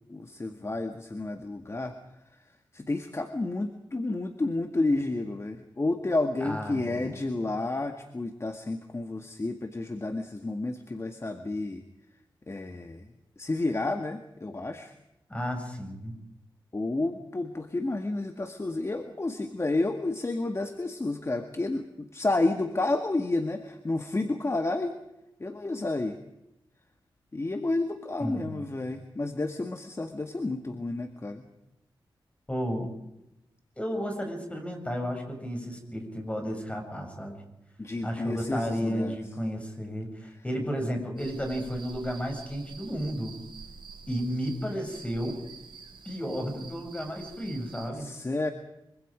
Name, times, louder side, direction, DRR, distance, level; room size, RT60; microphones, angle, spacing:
voice 1, 0.1-1.9 2.7-11.8 12.5-13.1 13.4-14.9 16.7-25.0 25.4-26.2 27.3-31.4 37.8-39.2 47.9-48.5, left 2 dB, 30° left, 6 dB, 1.9 m, -30 dB
voice 2, 6.4-7.2 15.3-16.1 28.2-28.7 32.5-32.9 33.8-37.4 38.0-43.4 44.1-45.4 46.0-48.1, equal, 15° left, 3 dB, 7.6 m, -33 dB
sound 1, 41.2-47.9, right 5 dB, 65° right, 6.6 m, -47 dB
25.0 x 24.5 x 5.2 m, 0.88 s
cardioid pair, 60°, 9 cm